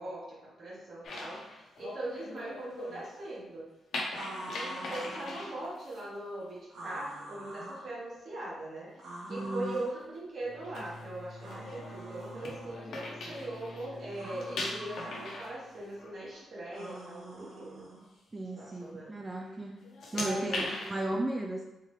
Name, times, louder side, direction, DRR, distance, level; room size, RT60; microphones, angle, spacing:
voice 1, 0.0-3.7 4.3-8.9 9.3-17.9 18.6-19.1 20.1-20.7, right 1 dB, 60° right, -5 dB, 1.3 m, -40 dB
sound 1, 1.0-3.1 3.9-6.0 8.9-9.3 9.7-9.9 10.5-13.9 14.2-16.4 16.7-17.0 17.5-17.6 18.5-18.8 19.3-19.5 19.8-21.0, left 2 dB, 70° left, 0.8 m, -41 dB
sound 2, 4.1-5.5 6.7-7.9 9.0-10.0 11.4-12.8 14.1-15.3 16.7-18.0, right 1 dB, 85° right, 1.4 m, -45 dB
voice 2, 9.3-9.8 18.3-19.8 20.1-21.6, right 1 dB, 20° right, 1 dB, 0.3 m, -35 dB
Bowed string instrument, 10.4-15.6, equal, 5° left, 1.2 m, -49 dB
3.6 x 2.7 x 3.2 m, 0.98 s
cardioid pair, 90°, 0 cm